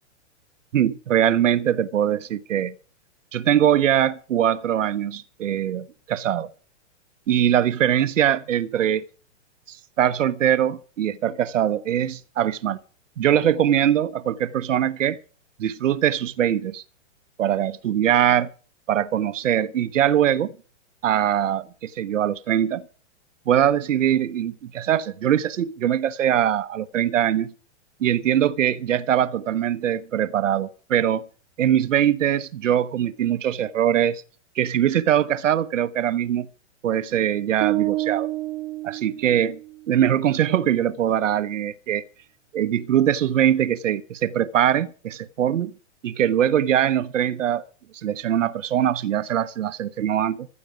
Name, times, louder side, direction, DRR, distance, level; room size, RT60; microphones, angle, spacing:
voice 1, 0.7-2.7 3.3-6.5 7.3-9.1 9.7-12.8 13.2-15.2 15.6-16.8 17.4-18.5 18.9-20.5 21.0-22.8 23.5-27.5 28.0-31.2 31.6-34.2 34.6-36.5 36.8-38.3 38.8-39.6 39.9-42.0 42.5-45.7 46.0-47.6 48.0-50.5, right 10 dB, 80° right, 1.0 m, -22 dB
sound 1, 37.6-39.8, right 17 dB, 40° right, 1.8 m, -28 dB
15.0 x 13.5 x 5.0 m
hypercardioid pair, 160°, 37 cm